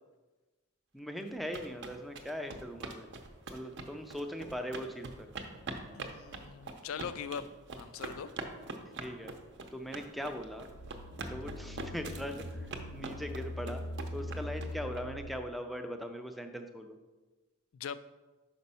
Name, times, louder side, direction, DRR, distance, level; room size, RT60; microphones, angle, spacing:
voice 1, 0.9-3.1 3.5-5.3 9.0-9.3 9.7-10.7 11.2-13.8 14.1-17.0, equal, ahead, 5 dB, 0.4 m, -40 dB
sound 1, 1.2-15.0, right 3 dB, 55° right, 0.7 m, -43 dB
voice 2, 5.9-7.5 7.8-8.3 17.7-18.0, left 7 dB, 70° left, 14 dB, 0.3 m, -41 dB
sound 2, 10.4-15.5, left 1 dB, 90° left, 1.0 m, -42 dB
5.2 x 5.1 x 5.5 m, 1.2 s
head